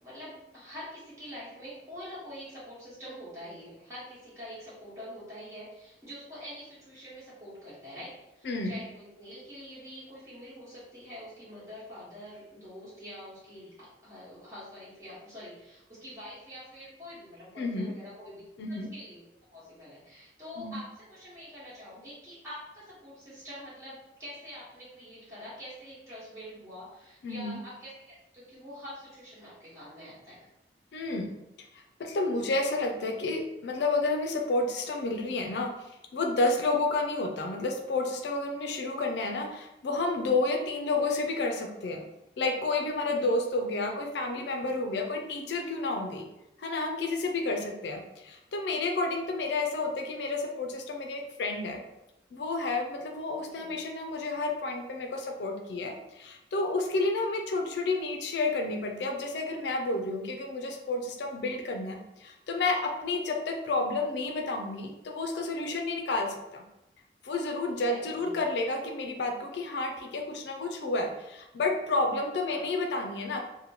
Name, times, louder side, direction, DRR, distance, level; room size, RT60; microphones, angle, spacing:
voice 1, 0.0-18.4 18.7-19.2 19.5-30.3 43.0-43.4 47.4-47.6 53.3-53.8 67.7-68.4 72.4-72.6, equal, 15° right, -10 dB, 1.3 m, -45 dB
voice 2, 8.4-8.8 17.6-17.9 18.6-18.9 20.6-20.8 27.2-27.6 30.9-31.3 31.7-35.7 36.1-42.0 42.4-46.3 46.6-51.8 52.3-66.6 67.2-73.4, left 2 dB, 75° left, 3 dB, 0.4 m, -30 dB
2.9 x 2.1 x 2.8 m, 0.90 s
head